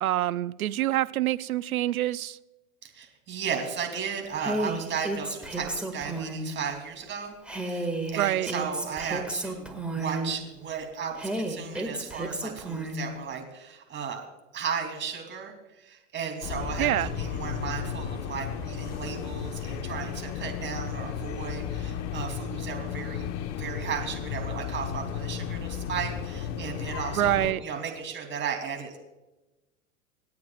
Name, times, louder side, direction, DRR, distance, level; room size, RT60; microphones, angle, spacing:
voice 1, 0.0-2.4 8.2-8.5 16.8-17.1 27.1-27.6, right 13 dB, 90° right, 16 dB, 0.6 m, -26 dB
voice 2, 2.8-14.2 14.5-23.3 23.5-29.0, right 6 dB, 25° right, 3 dB, 3.3 m, -35 dB
Female speech woman speaking, 4.4-6.5 7.5-10.4 11.2-13.1, right 1 dB, ahead, 2.1 m, -32 dB
sound 1, 16.4-27.5, left 8 dB, 40° left, 1.1 m, -34 dB
27.5 x 9.4 x 2.5 m, 1.0 s
hypercardioid pair, 110°, 41 cm